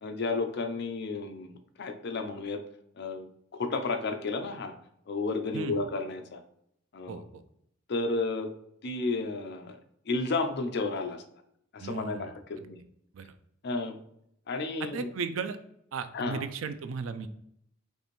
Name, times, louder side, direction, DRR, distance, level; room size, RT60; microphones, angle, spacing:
voice 1, 0.0-2.6 3.0-4.7 5.1-6.4 6.9-7.2 7.9-8.5 8.8-9.8 10.1-11.2 11.7-12.8 13.6-14.0 14.5-15.1 16.1-16.4, left 3 dB, 55° left, 6 dB, 0.5 m, -32 dB
voice 2, 7.1-7.4 11.8-12.3 13.1-13.3 14.9-15.6 15.9-17.3, right 5 dB, 75° right, 11 dB, 0.4 m, -35 dB
5.2 x 2.5 x 3.1 m, 0.73 s
head